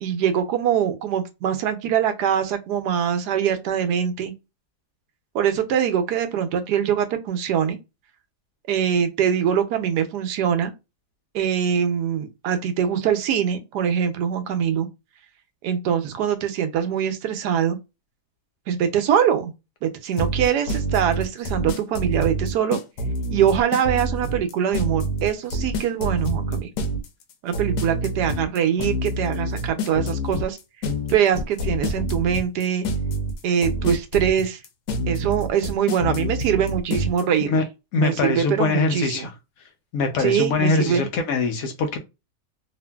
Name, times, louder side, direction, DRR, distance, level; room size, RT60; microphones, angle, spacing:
voice 1, 0.0-4.3 5.3-7.8 8.7-10.7 11.3-14.9 15.6-17.8 18.7-19.5 19.8-22.8 23.3-26.7 27.4-30.6 31.1-32.9 33.4-34.6 35.1-37.6 38.0-39.3 40.2-41.1, right 8 dB, 80° right, 1.1 m, -23 dB
sound 1, 20.2-37.2, right 1 dB, 90° left, 1.2 m, -27 dB
voice 2, 37.9-39.3 39.9-42.0, left 3 dB, 70° left, 0.9 m, -22 dB
2.8 x 2.5 x 2.2 m
omnidirectional pair, 1.7 m